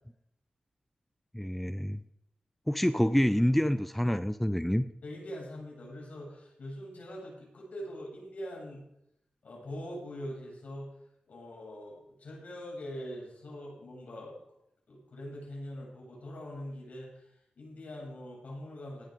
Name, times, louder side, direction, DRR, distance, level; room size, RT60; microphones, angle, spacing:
voice 1, 1.3-2.0 2.7-4.8, equal, 5° left, 11 dB, 0.7 m, -27 dB
voice 2, 5.0-8.8 9.4-10.9 11.3-14.3 14.9-19.1, equal, 70° left, -2 dB, 8.0 m, -43 dB
17.5 x 10.5 x 5.3 m, 0.77 s
wide cardioid pair, 85°, 3 cm